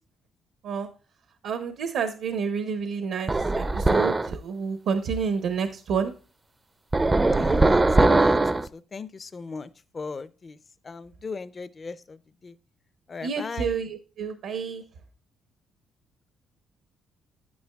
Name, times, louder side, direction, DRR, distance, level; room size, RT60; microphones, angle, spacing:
voice 1, 1.4-6.1 13.2-14.8, right 6 dB, 80° right, 8 dB, 0.7 m, -29 dB
sound 1, 3.3-4.3 6.9-8.7, right 2 dB, 20° right, 0.4 m, -20 dB
voice 2, 7.3-10.6 10.8-12.5 13.1-13.8, left 4 dB, 35° left, 14 dB, 0.5 m, -38 dB
9.4 x 8.9 x 2.3 m, 0.37 s
cardioid pair, 90°, 0 cm